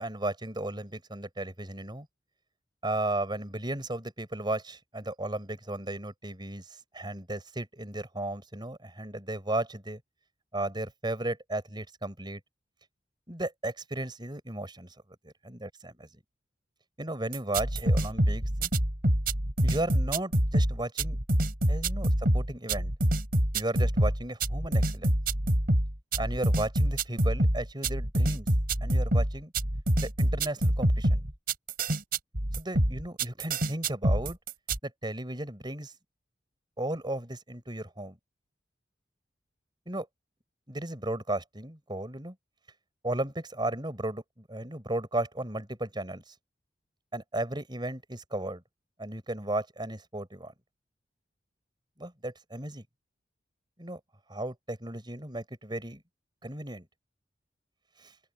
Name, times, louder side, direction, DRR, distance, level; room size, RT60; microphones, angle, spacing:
voice 1, 0.0-2.1 2.8-6.6 6.9-10.0 10.5-12.4 13.3-14.9 15.2-15.7 17.0-18.7 19.6-21.2 21.7-22.9 23.5-25.1 26.2-28.5 28.8-29.5 30.0-31.2 32.5-34.4 34.8-35.9 36.8-38.2 39.9-40.1 40.7-42.4 43.0-46.3 47.1-48.6 49.0-50.5 52.0-52.8 53.8-54.0 54.3-56.0 56.4-56.9 58.0-58.1, right 1 dB, 25° right, 7.2 m, -35 dB
alger-drums, 17.3-34.8, right 1 dB, 55° right, 4.6 m, -26 dB
open air
head